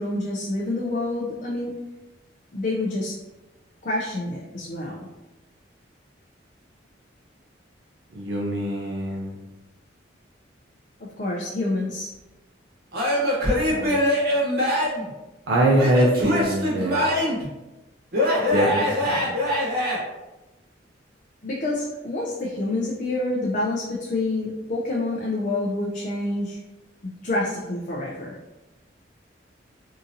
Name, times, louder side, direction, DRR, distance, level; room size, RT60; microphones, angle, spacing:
voice 1, 0.0-1.7 2.5-3.2 3.8-5.1 11.0-12.1 21.4-26.6 27.2-28.3, left 2 dB, 45° left, -3 dB, 0.5 m, -27 dB
voice 2, 8.1-9.3 13.7-14.0 15.5-17.0 18.4-19.3, right 1 dB, 70° right, -3 dB, 0.5 m, -23 dB
Male speech man speaking / Yell / Laughter, 12.9-15.1 15.7-17.5 18.1-20.0, left 1 dB, 55° right, 1.0 m, -23 dB
3.7 x 2.7 x 2.7 m, 1.0 s
head